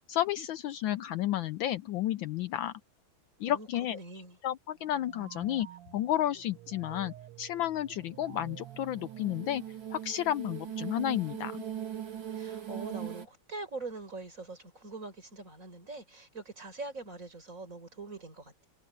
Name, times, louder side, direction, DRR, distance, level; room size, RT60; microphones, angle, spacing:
voice 1, 0.1-2.7 3.4-4.0 4.4-5.7 5.9-9.6 9.9-11.6, left 12 dB, 75° left, 1.2 m, -32 dB
voice 2, 3.5-4.4 12.3-18.7, right 3 dB, 35° right, 4.9 m, -43 dB
sound 1, 4.8-10.2, right 15 dB, 85° right, 2.0 m, -50 dB
sound 2, 7.8-13.3, right 10 dB, 65° right, 3.3 m, -40 dB
open air
omnidirectional pair, 2.4 m